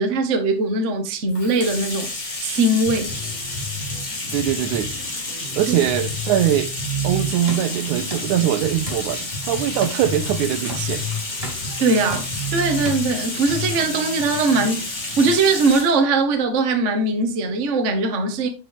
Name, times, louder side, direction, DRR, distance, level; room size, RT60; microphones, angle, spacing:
voice 1, 0.0-2.1 2.4-3.1 5.7-5.8 11.8-14.8 15.2-18.5, right 3 dB, 50° right, 0.9 m, -20 dB
Bathtub (filling or washing), 1.3-16.0, left 2 dB, 25° left, 2.0 m, -31 dB
sound 1, 2.9-15.8, equal, 60° left, 3.8 m, -32 dB
voice 2, 4.3-4.9 5.6-6.7 7.0-11.0, right 11 dB, 80° right, 2.0 m, -22 dB
sound 2, 7.3-14.7, right 1 dB, 20° right, 2.9 m, -39 dB
10.0 x 5.6 x 3.4 m
omnidirectional pair, 3.6 m